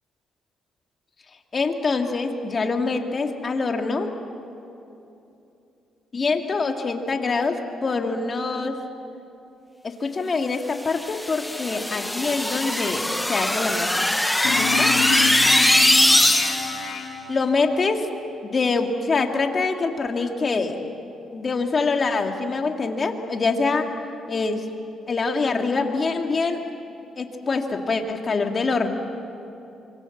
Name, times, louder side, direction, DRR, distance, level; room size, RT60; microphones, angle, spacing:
voice 1, 1.5-4.1 6.1-8.7 9.8-14.1 14.6-14.9 17.3-18.1 18.5-20.8 21.3-23.9 24.3-24.7 25.1-26.6 27.2-28.9, left 4 dB, 40° left, 4 dB, 2.4 m, -25 dB
sound 1, 10.9-16.9, left 1 dB, 5° left, 1.1 m, -21 dB
sound 2, 14.4-17.7, left 7 dB, 80° left, 2.3 m, -29 dB
25.5 x 24.0 x 7.4 m, 2.8 s
cardioid pair, 90°, 0 cm